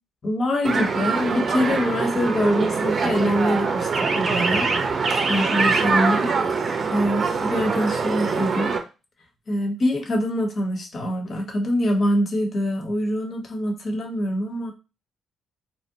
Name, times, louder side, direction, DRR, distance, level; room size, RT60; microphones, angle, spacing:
voice 1, 0.2-3.9 4.2-6.3 6.9-8.7 9.5-14.7, equal, 50° left, 3 dB, 0.8 m, -24 dB
sound 1, 0.6-8.8, right 4 dB, 55° right, 0.5 m, -23 dB
2.7 x 2.1 x 2.7 m, 0.29 s
hypercardioid pair, 50°, 0 cm